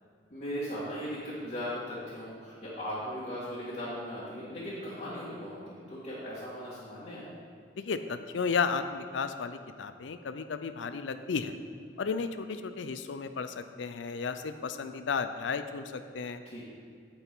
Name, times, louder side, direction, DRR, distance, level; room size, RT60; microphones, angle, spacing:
voice 1, 0.3-7.3 16.4-16.6, equal, 40° left, -9 dB, 1.9 m, -38 dB
voice 2, 7.8-11.6 12.0-16.4, left 5 dB, 90° left, 10 dB, 0.5 m, -33 dB
9.8 x 8.2 x 3.7 m, 2.3 s
head